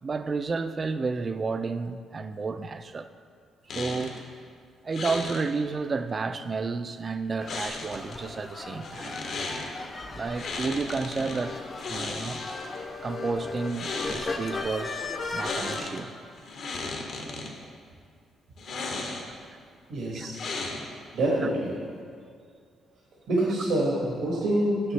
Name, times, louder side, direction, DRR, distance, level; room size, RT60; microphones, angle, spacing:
voice 1, 0.0-3.1 3.7-4.2 4.8-9.2 10.1-11.6 11.9-12.4 13.0-16.1 20.1-20.6, right 4 dB, 35° right, 0.3 m, -31 dB
sound 1, 3.7-4.2 4.9-5.4 7.5-8.2 8.8-9.7 10.4-11.4 11.8-12.8 13.6-14.3 15.3-16.0 16.4-17.5 18.6-19.4 20.3-21.0, left 3 dB, 65° left, 0.9 m, -35 dB
sound 2, 7.4-15.8, left 3 dB, 40° left, 0.6 m, -37 dB
voice 2, 19.9-20.4 21.1-21.8 23.3-24.9, right 1 dB, 75° right, 1.3 m, -26 dB
6.7 x 6.4 x 3.2 m
cardioid pair, 90°, 0 cm